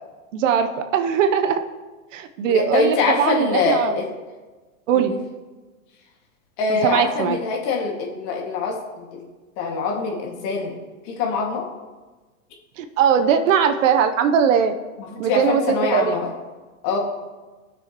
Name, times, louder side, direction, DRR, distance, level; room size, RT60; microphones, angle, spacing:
voice 1, 0.3-1.6 2.1-4.0 4.9-5.1 6.8-7.4 12.8-14.7 15.2-15.6 15.9-16.1, right 7 dB, 65° right, 7 dB, 1.0 m, -20 dB
voice 2, 2.4-4.1 4.9-5.2 6.6-9.3 9.6-10.8 11.1-11.7 15.0-16.3 16.8-17.0, left 4 dB, 45° left, 0 dB, 2.2 m, -24 dB
18.0 x 6.4 x 3.1 m, 1.2 s
hypercardioid pair, 130°, 41 cm